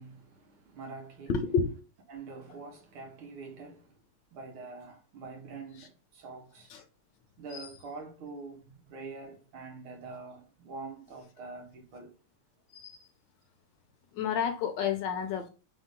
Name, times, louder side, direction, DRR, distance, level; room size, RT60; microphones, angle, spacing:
voice 1, 0.0-1.4 2.1-4.0 4.3-6.7 7.4-12.2, right 4 dB, 85° right, 2.0 m, -45 dB
voice 2, 1.3-1.7 6.7-6.8 7.5-7.7 12.7-13.0 14.1-15.5, left 6 dB, 70° left, 1.2 m, -30 dB
4.0 x 2.7 x 3.6 m
omnidirectional pair, 2.3 m